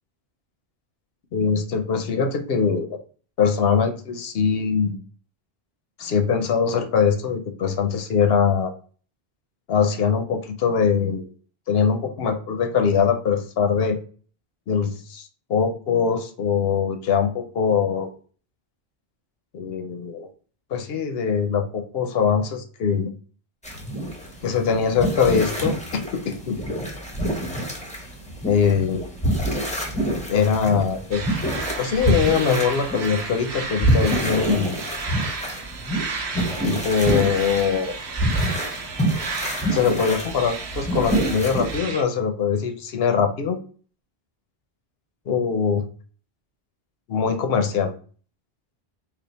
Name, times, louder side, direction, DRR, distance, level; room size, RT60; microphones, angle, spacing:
voice 1, 1.3-3.0 3.4-5.0 6.0-8.7 9.7-11.3 11.7-14.0 14.7-18.1 19.5-20.3 20.7-23.1 24.4-25.7 26.1-26.6 28.4-29.0 30.3-31.3 31.8-34.8 36.6-37.9 39.7-43.6 45.3-45.8 47.1-47.9, left 6 dB, 70° left, 6 dB, 0.8 m, -22 dB
sound 1, 23.6-41.8, right 1 dB, 10° left, 0.7 m, -27 dB
sound 2, 31.1-42.0, right 4 dB, 80° right, 0.9 m, -33 dB
3.4 x 2.4 x 4.0 m, 0.42 s
omnidirectional pair, 1.1 m